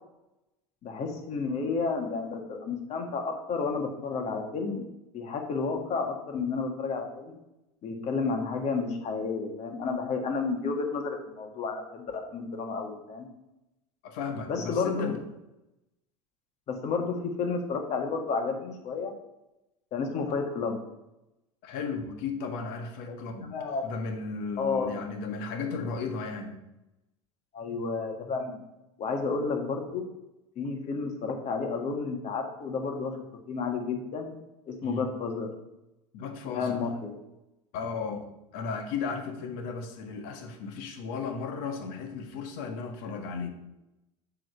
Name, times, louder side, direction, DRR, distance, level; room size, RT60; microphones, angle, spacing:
voice 1, 0.8-4.9 5.1-7.4 7.8-13.3 14.5-15.1 16.7-19.1 19.9-20.8 23.1-23.2 23.4-23.9 24.6-25.0 27.5-28.6 29.0-30.1 30.6-33.2 33.5-34.4 34.7-35.5 36.5-37.1, left 4 dB, 45° left, 4 dB, 1.8 m, -31 dB
voice 2, 14.0-15.2 21.6-23.5 23.8-26.5 34.8-35.1 36.1-36.8 37.7-38.3 38.5-43.5, left 5 dB, 65° left, 5 dB, 1.5 m, -35 dB
7.7 x 3.9 x 6.6 m, 0.90 s
hypercardioid pair, 90°, 16 cm